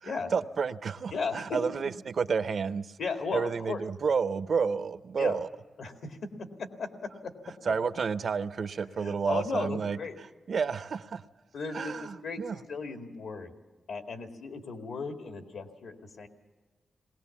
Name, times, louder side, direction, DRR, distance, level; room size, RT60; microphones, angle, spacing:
voice 1, 0.0-2.9 3.3-5.5 7.7-10.0 10.5-11.2 11.7-12.6, right 5 dB, 55° right, 13 dB, 0.6 m, -30 dB
voice 2, 1.1-1.9 3.0-3.8 5.2-5.4 5.8-6.2 6.6-7.3 7.6-7.8 9.0-10.2 11.5-12.4 12.7-13.5 13.9-16.3, left 4 dB, 80° left, 5 dB, 2.1 m, -36 dB
20.0 x 18.5 x 7.2 m, 1.3 s
wide cardioid pair, 145°, 0 cm